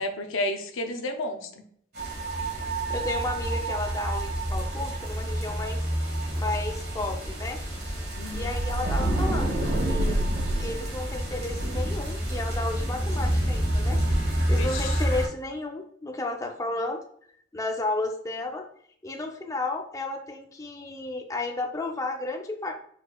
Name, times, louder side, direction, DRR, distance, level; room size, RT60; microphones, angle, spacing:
voice 1, 0.0-1.4 8.2-8.5 14.6-14.9, left 1 dB, 90° left, 6 dB, 0.6 m, -31 dB
sound 1, 1.9-15.3, right 1 dB, 50° right, 1.7 m, -28 dB
voice 2, 2.9-5.8 6.4-7.6 8.3-10.3 10.6-17.0 17.5-18.7 19.0-22.7, left 2 dB, 15° left, 3 dB, 0.4 m, -33 dB
sound 2, 8.2-11.0, right 1 dB, 75° right, 0.4 m, -28 dB
4.8 x 4.1 x 2.3 m, 0.63 s
head